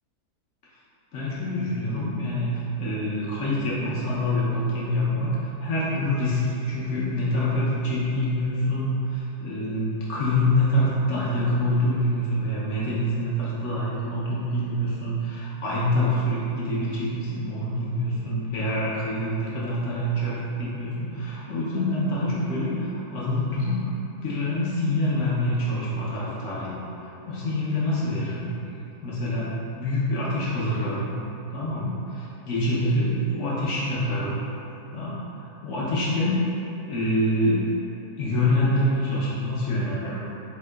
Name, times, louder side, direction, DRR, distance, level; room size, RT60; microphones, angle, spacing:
voice 1, 1.1-5.3 5.6-23.9 24.2-26.7 27.0-28.5 29.0-29.5 29.8-31.1 31.5-34.3 34.9-35.1 35.6-36.4 36.9-37.6 38.2-40.2, left 1 dB, 60° left, -7 dB, 0.8 m, -26 dB
4.3 x 2.8 x 2.2 m, 2.9 s
omnidirectional pair, 1.7 m